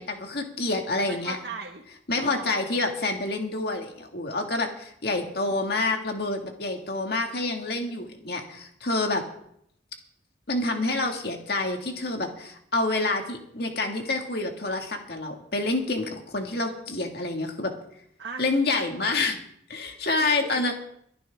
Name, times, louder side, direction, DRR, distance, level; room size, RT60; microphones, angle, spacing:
voice 1, 0.0-1.4 2.1-9.2 10.5-17.7 18.4-19.4 19.7-20.7, left 2 dB, 60° left, 3 dB, 2.2 m, -28 dB
voice 2, 1.0-1.8 2.1-2.8 5.2-5.5 18.2-18.5 18.7-18.9 20.1-20.7, right 4 dB, 70° right, 0 dB, 1.5 m, -39 dB
22.5 x 11.0 x 3.7 m, 0.71 s
head